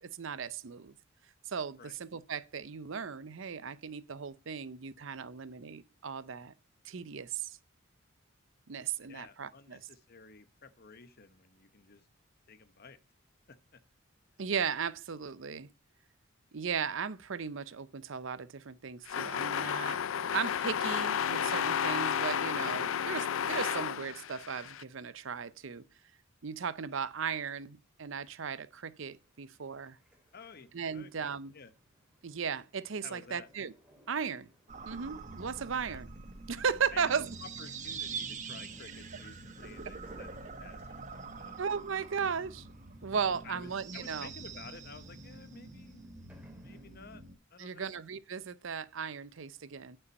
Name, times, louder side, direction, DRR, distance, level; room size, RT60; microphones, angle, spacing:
voice 1, 0.0-0.9 1.5-6.5 6.8-7.6 8.7-9.8 14.4-15.7 16.5-20.0 20.3-25.8 26.4-30.0 30.7-31.5 32.2-33.7 34.1-34.5 34.9-36.1 36.5-37.3 41.6-42.7 43.0-44.3 47.6-50.0, right 6 dB, 65° right, 0.6 m, -36 dB
voice 2, 9.0-12.1 12.5-13.0 13.5-13.8 30.3-31.7 33.0-33.5 35.9-36.0 36.9-41.6 43.4-46.1 46.5-47.2 47.5-47.9, left 4 dB, 50° left, 0.9 m, -52 dB
sound 1, 19.1-24.8, left 8 dB, 75° left, 0.4 m, -32 dB
sound 2, 28.8-47.0, right 1 dB, 5° right, 2.2 m, -65 dB
sound 3, 34.7-47.4, right 4 dB, 35° right, 1.2 m, -45 dB
9.6 x 5.6 x 5.2 m
head